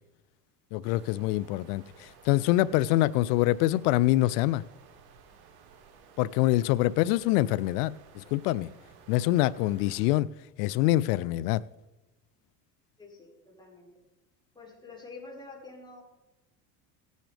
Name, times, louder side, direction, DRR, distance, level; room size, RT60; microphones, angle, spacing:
voice 1, 0.7-4.6 6.2-8.7 9.1-10.3 10.6-11.6, left 16 dB, 75° left, 0.5 m, -25 dB
sound 1, 0.8-10.2, right 6 dB, 50° right, 2.1 m, -55 dB
voice 2, 13.0-13.9 14.6-16.0, left 3 dB, 10° left, 5.1 m, -47 dB
18.0 x 9.2 x 3.4 m
hypercardioid pair, 85°, 48 cm